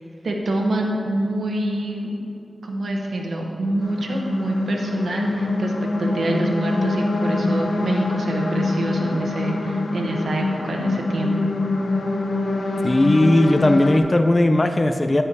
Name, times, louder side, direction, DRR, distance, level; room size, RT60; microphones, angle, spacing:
voice 1, 0.2-2.1 2.6-5.7 6.0-11.3, right 1 dB, 85° right, 0 dB, 1.0 m, -26 dB
sound 1, 3.8-14.0, left 2 dB, 85° left, 0.9 m, -24 dB
voice 2, 12.8-15.2, left 1 dB, 30° left, 7 dB, 0.5 m, -17 dB
9.9 x 4.4 x 6.8 m, 2.7 s
wide cardioid pair, 65°, 0 cm